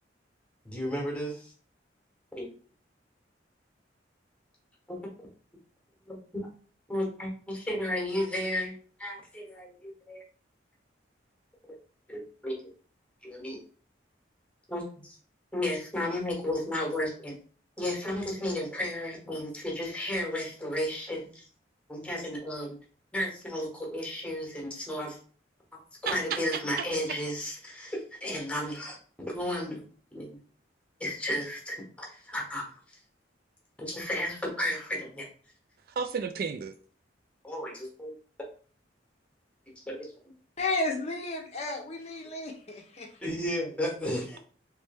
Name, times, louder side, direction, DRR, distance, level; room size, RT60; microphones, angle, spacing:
voice 1, 0.6-1.5 2.3-2.5 4.9-5.0 6.1-6.5 6.9-8.7 9.0-10.2 12.1-12.5 13.2-13.6 14.7-15.1 15.5-17.4 17.8-21.4 21.9-22.8 23.1-25.1 25.7-29.8 30.1-30.4 31.0-32.6 33.8-35.3 37.4-38.1 39.9-40.1 43.2-44.4, left 1 dB, 5° left, -1 dB, 1.0 m, -33 dB
voice 2, 26.0-27.2 36.0-36.7, right 6 dB, 50° right, 9 dB, 0.3 m, -33 dB
voice 3, 40.6-43.1, left 2 dB, 35° left, 2 dB, 0.6 m, -32 dB
3.3 x 3.1 x 3.3 m, 0.43 s
head